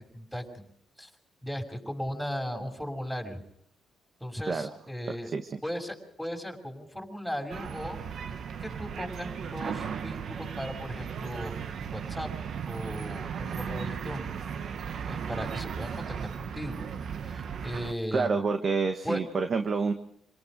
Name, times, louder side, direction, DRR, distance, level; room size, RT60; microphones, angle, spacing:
voice 1, 0.1-0.6 1.0-1.1 1.4-3.4 4.2-5.3 5.6-8.3 8.6-12.3 12.7-14.3 15.1-16.8 17.2-18.4 19.0-19.2, equal, ahead, 2 dB, 6.1 m, -37 dB
sound 1, 7.5-17.9, right 7 dB, 60° right, 1.2 m, -36 dB
voice 2, 18.1-19.9, right 4 dB, 45° right, 6 dB, 1.6 m, -28 dB
27.5 x 18.5 x 5.2 m, 0.72 s
cardioid pair, 90°, 0 cm